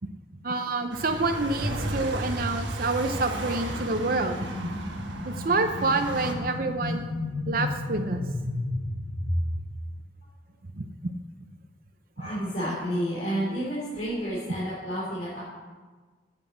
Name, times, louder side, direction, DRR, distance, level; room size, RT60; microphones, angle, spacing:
voice 1, 0.4-4.4 5.3-7.1 7.5-8.2 10.8-10.9 12.2-12.3, right 3 dB, 50° right, 6 dB, 0.6 m, -27 dB
sound 1, 0.9-6.3, right 1 dB, 85° right, 1.5 m, -34 dB
sound 2, 3.6-9.6, left 1 dB, 25° left, 3.7 m, -32 dB
voice 2, 12.2-15.4, equal, 50° left, -8 dB, 3.3 m, -30 dB
9.5 x 7.9 x 7.3 m, 1.4 s
head